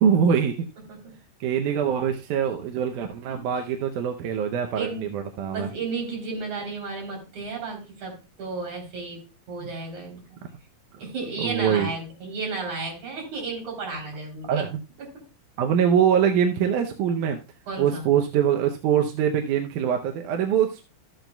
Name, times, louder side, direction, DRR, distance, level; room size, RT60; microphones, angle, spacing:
voice 1, 0.0-0.7 1.4-5.7 9.6-9.7 11.4-11.9 14.5-14.8 15.6-17.4 17.8-20.8, right 8 dB, 75° right, 4 dB, 2.0 m, -23 dB
voice 2, 4.7-5.1 5.5-10.4 11.0-14.6 15.0-15.2 17.7-18.1, right 4 dB, 55° right, 0 dB, 4.8 m, -33 dB
13.0 x 9.0 x 2.2 m, 0.29 s
omnidirectional pair, 4.0 m